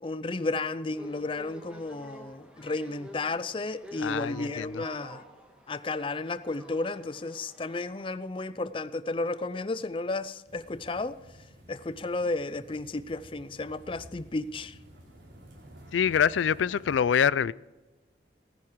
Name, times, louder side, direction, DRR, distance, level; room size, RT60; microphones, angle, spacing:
voice 1, 0.0-5.2 5.7-11.2 11.7-14.7, left 2 dB, 30° left, 0.5 m, -33 dB
sound 1, 0.9-8.2, equal, 5° right, 1.6 m, -50 dB
voice 2, 4.0-4.8 15.9-17.5, left 7 dB, 85° left, 0.4 m, -25 dB
sound 2, 10.5-17.0, equal, 80° right, 3.5 m, -52 dB
18.0 x 9.7 x 4.7 m
head